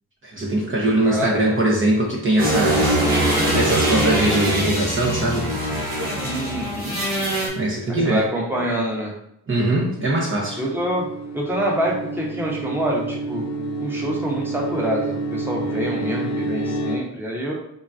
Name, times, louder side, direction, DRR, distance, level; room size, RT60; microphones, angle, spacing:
voice 1, 0.2-3.0 3.5-5.5 7.6-8.2 9.5-10.6, right 1 dB, 30° right, -3 dB, 0.8 m, -21 dB
voice 2, 0.7-1.6 6.2-7.0 7.9-9.1 10.6-11.0 11.3-13.5 13.8-17.5, right 1 dB, 5° right, -2 dB, 1.0 m, -26 dB
sound 1, 2.4-7.5, right 1 dB, 55° right, 1.4 m, -22 dB
sound 2, 9.6-17.0, right 2 dB, 70° left, 0.5 m, -29 dB
3.8 x 2.2 x 2.5 m, 0.76 s
supercardioid pair, 45°, 41 cm